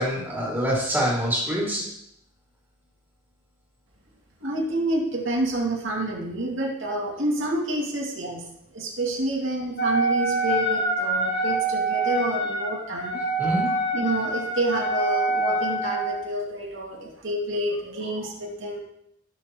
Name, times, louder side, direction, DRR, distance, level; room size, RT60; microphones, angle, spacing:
voice 1, 0.0-1.9 13.4-13.7, equal, 10° right, -5 dB, 2.3 m, -25 dB
voice 2, 4.4-8.4 8.7-13.2 13.9-18.8, right 1 dB, 65° right, -2 dB, 2.4 m, -28 dB
Wind instrument woodwind instrument, 9.8-16.2, right 2 dB, 55° left, 1.8 m, -25 dB
17.5 x 6.2 x 3.0 m, 0.76 s
head